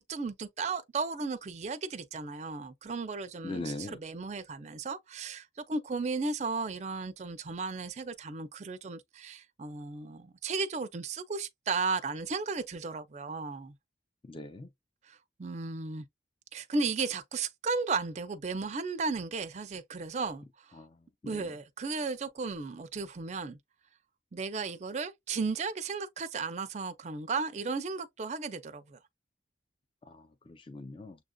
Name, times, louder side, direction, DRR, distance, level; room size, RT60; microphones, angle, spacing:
voice 1, 0.0-13.7 15.0-16.0 16.5-20.7 21.3-23.6 24.3-29.0, right 4 dB, 35° right, 0.4 m, -35 dB
voice 2, 3.4-4.0 14.3-14.7 20.8-20.9 21.3-21.5 30.1-30.2 30.5-31.2, left 2 dB, 25° left, 0.4 m, -40 dB
6.9 x 2.5 x 2.2 m
head